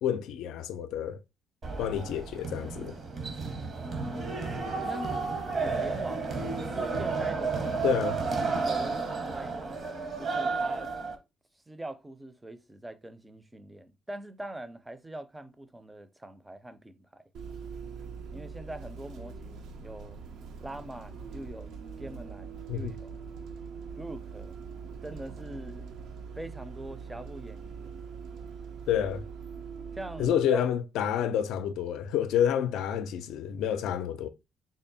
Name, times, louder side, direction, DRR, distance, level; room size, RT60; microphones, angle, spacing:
voice 1, 0.0-1.2 1.8-2.9 7.8-8.2 22.7-22.9 28.9-29.2 30.2-34.3, left 9 dB, 85° left, 0.3 m, -29 dB
sound 1, 1.6-11.2, right 4 dB, 50° right, 0.8 m, -32 dB
voice 2, 3.7-4.4 4.7-5.2 5.6-7.7 8.4-10.9 11.7-17.2 18.3-20.2 20.6-21.7 22.0-23.2 24.0-24.6 25.0-25.9 26.4-27.9 30.0-30.7 31.2-31.4, right 1 dB, 15° right, 0.4 m, -42 dB
Bus, 17.3-30.3, right 6 dB, 80° right, 0.5 m, -42 dB
3.6 x 2.0 x 3.9 m
cardioid pair, 90°, 0 cm